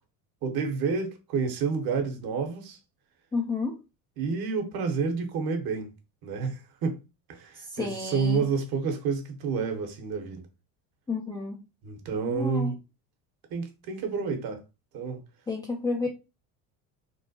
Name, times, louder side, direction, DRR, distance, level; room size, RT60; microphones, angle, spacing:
voice 1, 0.4-2.8 4.2-5.9 6.2-7.0 7.3-10.5 11.8-12.7 13.5-14.6 14.9-15.2, right 5 dB, 55° right, 1.0 m, -29 dB
voice 2, 3.3-3.8 7.5-8.4 11.1-11.6 12.2-12.7 15.5-16.1, left 3 dB, 10° left, 0.4 m, -30 dB
3.1 x 2.1 x 2.7 m
hypercardioid pair, 75°, 45 cm